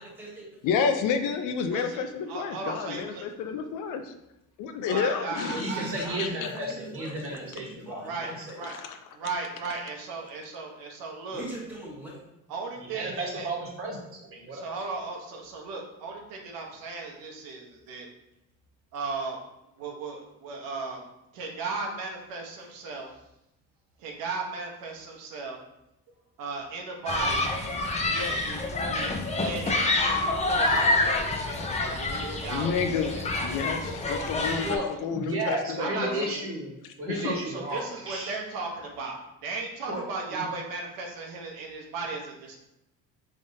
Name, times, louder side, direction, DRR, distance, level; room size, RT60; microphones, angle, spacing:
voice 1, 0.0-0.6 0.9-1.0 5.5-8.8 11.3-12.2 22.6-22.7 34.0-34.2, right 1 dB, 5° right, -3 dB, 1.3 m, -42 dB
voice 2, 0.6-4.1 4.6-5.7 6.2-6.3 8.7-8.9 32.5-33.2 33.4-36.3 37.1-37.3, left 6 dB, 65° left, 7 dB, 0.6 m, -30 dB
voice 3, 1.7-2.0 2.3-3.2 4.9-6.0 8.0-8.7 9.1-11.5 12.5-13.5 14.5-18.1 18.9-19.4 19.8-21.0 21.3-23.1 24.0-25.6 26.4-27.4 28.1-33.5 35.8-36.3 37.1-42.6, right 3 dB, 80° right, 0 dB, 1.0 m, -36 dB
voice 4, 5.5-8.6 12.8-14.8 17.5-17.6 34.6-38.4 39.9-40.0 40.3-40.5, right 1 dB, 40° right, -1 dB, 1.3 m, -34 dB
Human group actions, 27.1-34.8, left 2 dB, 20° left, 0.5 m, -27 dB
5.0 x 3.5 x 2.7 m, 0.87 s
cardioid pair, 120°, 34 cm